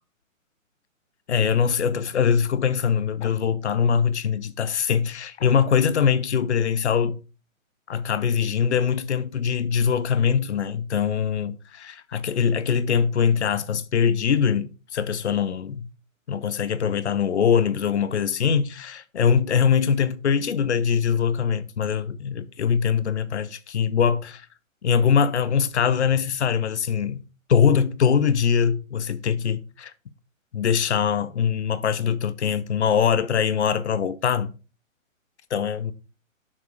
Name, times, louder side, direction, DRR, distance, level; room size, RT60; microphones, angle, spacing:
voice 1, 1.3-7.2 7.9-15.9 16.3-24.5 24.8-27.2 27.5-29.9 30.5-34.5 35.5-35.9, left 7 dB, 55° left, 0.7 m, -22 dB
7.1 x 4.6 x 4.9 m
figure-of-eight pair, 130°, 41 cm